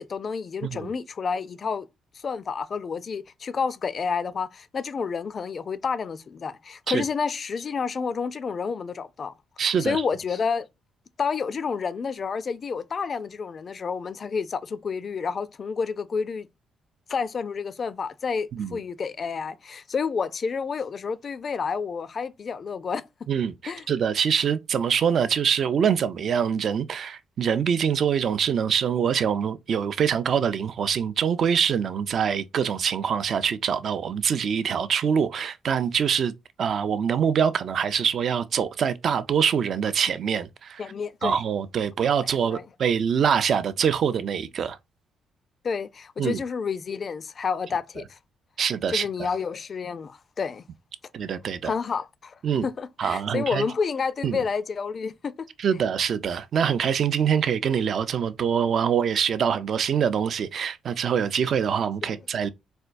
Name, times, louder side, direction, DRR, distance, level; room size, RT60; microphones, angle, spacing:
voice 1, 0.0-1.9 2.1-9.3 9.6-10.7 11.2-16.5 17.1-23.1 23.7-23.9 40.8-41.4 42.5-42.6 45.6-48.2 48.9-50.6 51.6-55.3 62.0-62.2, left 5 dB, 45° left, 0.4 m, -30 dB
voice 2, 9.6-10.0 18.5-18.8 23.3-36.3 36.6-40.8 41.2-44.8 46.2-46.4 48.6-49.1 51.1-51.7 52.4-52.7 53.0-53.7 54.2-54.4 55.6-62.5, right 7 dB, 60° right, 0.4 m, -24 dB
4.2 x 2.2 x 2.5 m
cardioid pair, 90°, 0 cm